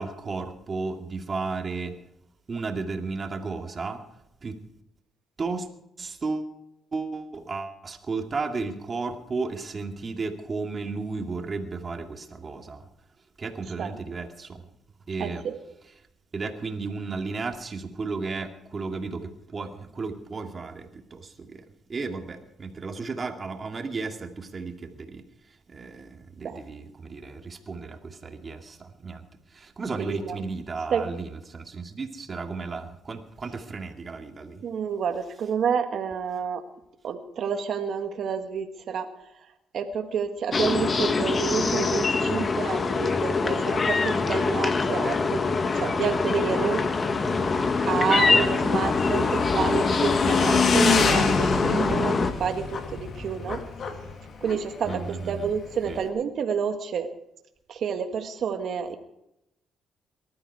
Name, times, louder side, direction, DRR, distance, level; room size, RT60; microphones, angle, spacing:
voice 1, 0.0-2.0 2.5-4.0 4.4-4.7 5.4-5.7 6.0-6.6 6.9-12.9 13.4-14.7 15.1-15.5 16.3-34.6 42.2-42.5 47.2-47.6 48.2-48.8 54.8-55.5 55.9-56.0, right 4 dB, 35° right, 5 dB, 2.2 m, -34 dB
voice 2, 15.2-15.5 26.4-26.6 30.0-30.4 30.9-31.1 34.6-36.6 37.0-39.1 39.7-46.9 47.9-53.6 54.4-55.0 55.3-57.1 57.7-59.0, right 7 dB, 65° right, 6 dB, 1.6 m, -29 dB
sound 1, 40.5-52.3, left 4 dB, 35° left, 1.4 m, -24 dB
Motorcycle / Engine, 46.9-56.1, left 5 dB, 55° left, 2.2 m, -28 dB
19.5 x 13.0 x 4.7 m, 0.82 s
cardioid pair, 90°, 0 cm